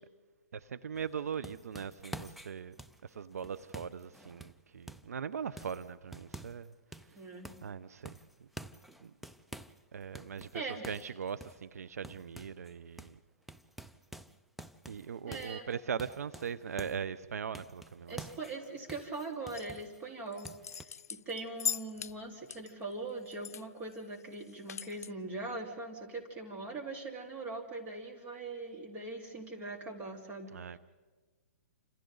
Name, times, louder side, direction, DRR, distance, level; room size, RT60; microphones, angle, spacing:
voice 1, 0.5-2.8 3.0-6.7 7.1-7.3 7.6-8.2 9.0-9.1 9.9-13.2 14.9-18.3 30.5-30.8, right 7 dB, 80° right, 0.7 m, -40 dB
sound 1, 1.0-5.2 5.6-6.7 6.9-7.7 8.1-9.8 10.1-12.7 13.0-13.2 13.5-17.1 17.5-20.0 20.4-20.9, right 1 dB, ahead, 0.5 m, -49 dB
voice 2, 7.1-7.5 10.5-11.0 15.3-15.7 18.1-30.5, right 3 dB, 20° right, 4.0 m, -41 dB
sound 2, 19.5-19.8 20.3-22.1 22.5-23.6 23.9-24.0 24.3-25.1, left 8 dB, 80° left, 0.6 m, -39 dB
29.5 x 27.0 x 4.0 m
hypercardioid pair, 145°, 8 cm